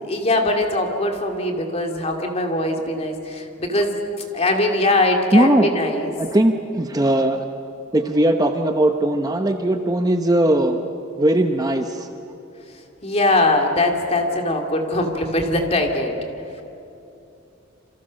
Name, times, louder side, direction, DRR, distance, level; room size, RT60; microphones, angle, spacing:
voice 1, 0.1-4.0 4.3-6.1 13.0-16.2, left 2 dB, 30° left, 3 dB, 2.7 m, -21 dB
voice 2, 5.3-5.7 6.2-7.4 7.9-10.8 11.2-12.1, right 1 dB, 20° right, 5 dB, 0.9 m, -19 dB
28.0 x 26.5 x 6.5 m, 2.8 s
head